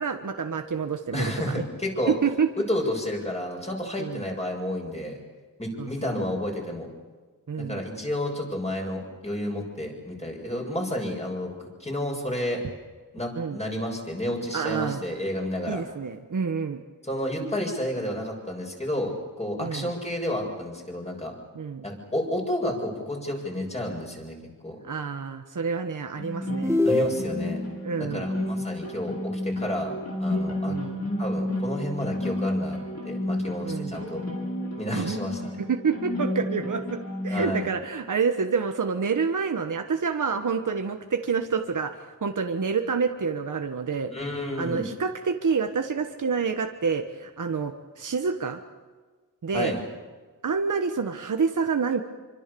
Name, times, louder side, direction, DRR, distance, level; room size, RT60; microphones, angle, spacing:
voice 1, 0.0-1.6 2.1-2.5 4.0-4.2 5.8-6.2 7.5-7.8 13.4-13.6 14.5-15.0 15.7-16.8 19.6-19.9 21.5-21.8 24.8-26.7 27.8-28.2 30.7-31.0 33.6-34.0 34.9-35.2 35.6-37.0 37.2-44.1 44.6-48.6 49.4-49.7 50.4-52.0, right 5 dB, 65° right, 6 dB, 1.4 m, -28 dB
voice 2, 1.1-2.1 2.7-5.2 5.6-6.9 7.6-12.6 13.1-15.8 17.0-21.3 21.8-24.4 24.6-24.8 26.8-27.6 28.0-29.9 30.2-30.8 31.2-32.8 33.0-34.2 34.8-35.6 37.3-37.7 44.1-44.9 49.5-49.8, left 1 dB, 20° left, 1 dB, 7.3 m, -31 dB
sound 1, 26.2-37.6, left 1 dB, 50° left, 5.9 m, -31 dB
sound 2, 26.6-27.7, left 2 dB, 10° right, 1.9 m, -24 dB
28.0 x 25.0 x 7.0 m, 1.4 s
wide cardioid pair, 115°, 34 cm